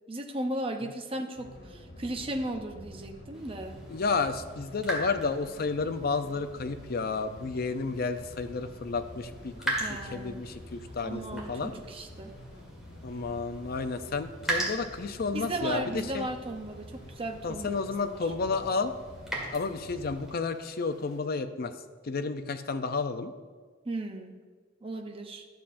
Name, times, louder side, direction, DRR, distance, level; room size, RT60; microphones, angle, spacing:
voice 1, 0.1-3.8 9.8-10.4 11.0-12.3 15.3-17.8 18.1-18.3 23.8-24.4 24.8-25.5, right 1 dB, 30° right, 4 dB, 0.7 m, -36 dB
sound 1, 1.4-20.3, equal, 90° left, 1.9 m, -47 dB
sound 2, 3.3-21.2, right 1 dB, 5° right, 1.7 m, -41 dB
voice 2, 3.9-9.8 10.1-11.7 13.0-16.3 17.4-18.9 19.5-21.7 22.0-23.3, left 4 dB, 50° left, 9 dB, 0.5 m, -31 dB
11.5 x 7.0 x 2.5 m, 1.5 s
head